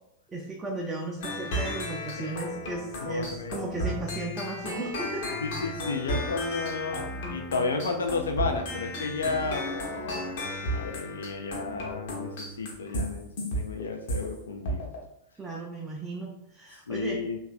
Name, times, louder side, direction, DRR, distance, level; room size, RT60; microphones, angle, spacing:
voice 1, 0.3-5.4 15.4-17.2, right 2 dB, 15° right, -3 dB, 0.4 m, -35 dB
sound 1, 1.2-14.3 14.7-15.0, equal, 55° left, 0.7 m, -34 dB
voice 2, 3.0-3.6 5.4-13.3 13.5-14.9 16.9-17.4, left 4 dB, 70° left, 4 dB, 0.3 m, -32 dB
3.0 x 2.3 x 2.4 m, 0.79 s
figure-of-eight pair, 90°, 0 cm